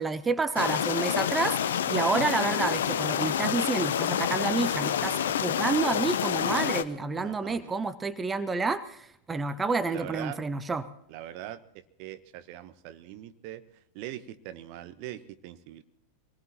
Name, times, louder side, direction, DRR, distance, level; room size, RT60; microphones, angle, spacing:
voice 1, 0.0-10.9, right 4 dB, 15° right, 13 dB, 0.9 m, -29 dB
sound 1, 0.6-6.8, left 9 dB, 60° left, 0.7 m, -28 dB
voice 2, 7.2-7.7 9.9-10.4 11.1-13.6 13.9-15.8, right 13 dB, 45° right, 11 dB, 1.0 m, -42 dB
24.5 x 19.0 x 3.0 m, 0.70 s
figure-of-eight pair, 90°, 0 cm